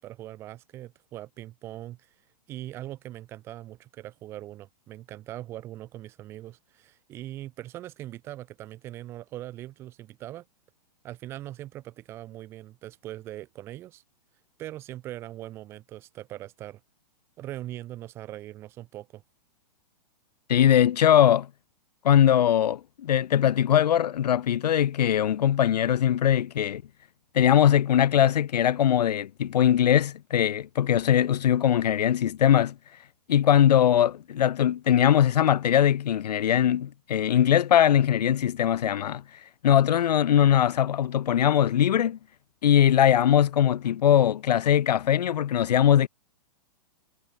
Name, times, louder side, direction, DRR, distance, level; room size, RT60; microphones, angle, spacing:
voice 1, 0.0-2.1 2.5-10.4 11.0-14.0 14.6-16.8 17.4-19.2, right 14 dB, 10° right, 0.8 m, -41 dB
voice 2, 20.5-21.5 22.0-26.8 27.3-32.8 33.3-39.2 39.6-42.2 42.6-46.1, left 10 dB, 80° left, 0.7 m, -21 dB
hypercardioid pair, 180°, 20 cm